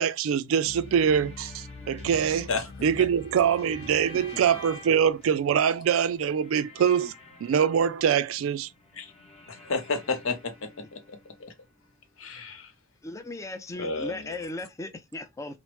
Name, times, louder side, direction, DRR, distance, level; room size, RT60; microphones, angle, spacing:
voice 1, 0.0-2.5 2.8-7.1 7.4-8.7, right 8 dB, 80° right, 0.3 m, -24 dB
sound 1, 0.6-11.5, left 3 dB, 30° left, 0.9 m, -47 dB
Bowed string instrument, 2.1-5.1, left 1 dB, 60° left, 1.2 m, -47 dB
voice 2, 9.5-11.0 11.4-11.5 12.2-12.7 13.8-14.4, left 3 dB, 80° left, 0.8 m, -31 dB
voice 3, 13.0-15.6, left 2 dB, 15° left, 0.4 m, -37 dB
3.0 x 2.0 x 2.9 m
head